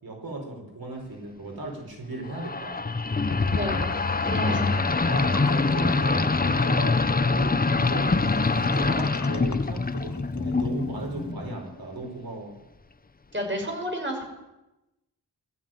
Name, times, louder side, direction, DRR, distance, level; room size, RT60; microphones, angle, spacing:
voice 1, 0.0-2.8 4.4-12.6, right 2 dB, 60° right, 1 dB, 4.9 m, -36 dB
sound 1, 2.3-11.7, left 3 dB, 20° left, 0.7 m, -24 dB
Gurgling / Sink (filling or washing), 3.1-10.6, left 5 dB, 45° left, 1.1 m, -40 dB
voice 2, 3.6-3.9 4.2-4.8 13.3-14.2, equal, 30° right, 2 dB, 6.1 m, -31 dB
20.5 x 14.0 x 9.2 m, 0.98 s
wide cardioid pair, 120°, 40 cm